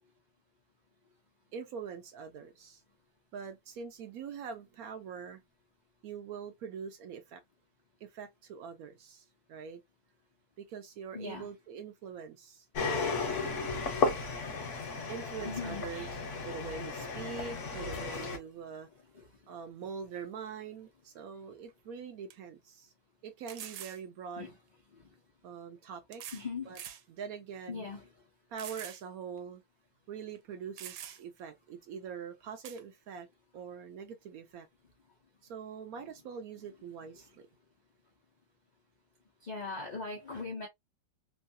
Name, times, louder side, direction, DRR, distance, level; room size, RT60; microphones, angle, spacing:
voice 1, 1.5-2.8 3.3-5.4 6.0-7.4 8.0-9.8 10.6-12.7 15.1-16.1 16.4-18.9 19.5-22.9 23.2-24.5 25.4-26.2 26.7-26.8 27.1-27.9 28.5-29.6 30.1-33.3 33.5-34.7 35.4-37.5, right 6 dB, 70° right, 0.8 m, -43 dB
voice 2, 11.1-11.5 15.4-16.1 18.0-18.1 19.1-19.3 24.4-24.5 24.9-25.1 26.3-26.8 27.7-28.1 39.4-40.7, left 4 dB, 75° left, 0.4 m, -40 dB
sound 1, 12.7-18.4, left 4 dB, 55° left, 0.9 m, -34 dB
sound 2, 21.7-21.8 22.3-22.4 23.5-24.0 25.1-25.2 26.1-26.5 26.8-27.0 27.6-27.7 28.6-29.0 29.4-29.5 30.4-30.5 30.8-31.4 32.6-32.8, right 10 dB, 85° right, 1.3 m, -45 dB
3.1 x 2.2 x 2.5 m
omnidirectional pair, 1.9 m